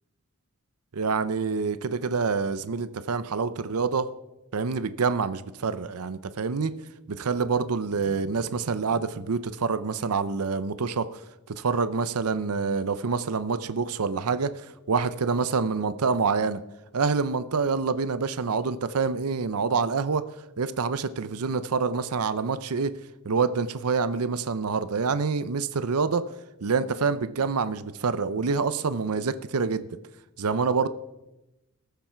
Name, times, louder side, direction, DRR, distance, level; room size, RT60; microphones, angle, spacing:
voice 1, 0.9-4.1 4.5-6.7 7.1-11.1 11.6-14.5 14.9-16.6 16.9-20.2 20.6-22.9 23.2-26.3 26.6-29.9 30.4-30.9, right 5 dB, 85° right, 13 dB, 0.6 m, -26 dB
20.0 x 7.0 x 4.5 m, 0.96 s
head